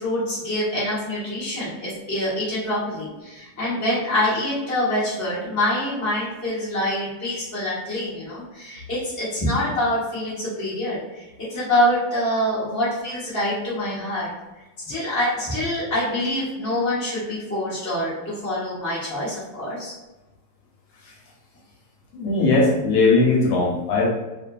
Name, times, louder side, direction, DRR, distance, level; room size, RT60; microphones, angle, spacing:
voice 1, 0.0-14.3 14.9-19.9, left 1 dB, 15° left, -9 dB, 0.5 m, -25 dB
voice 2, 22.1-24.1, left 3 dB, 75° left, -2 dB, 1.3 m, -19 dB
2.6 x 2.5 x 2.2 m, 1.1 s
omnidirectional pair, 1.9 m